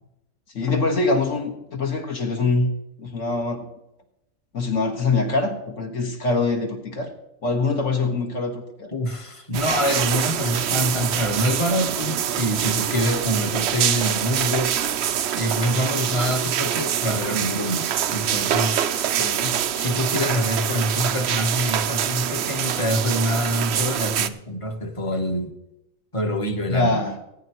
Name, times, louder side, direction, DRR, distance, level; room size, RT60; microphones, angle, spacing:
voice 1, 0.5-2.7 3.0-3.7 4.5-7.1 7.4-8.9 19.1-19.6 26.7-27.1, left 3 dB, 60° left, 3 dB, 1.8 m, -24 dB
voice 2, 8.9-14.7 15.3-18.8 19.8-25.5 26.1-27.0, equal, 25° left, 6 dB, 1.0 m, -25 dB
sound 1, 9.5-24.3, right 10 dB, 60° right, 0.7 m, -25 dB
18.5 x 9.4 x 3.0 m, 0.85 s
omnidirectional pair, 1.4 m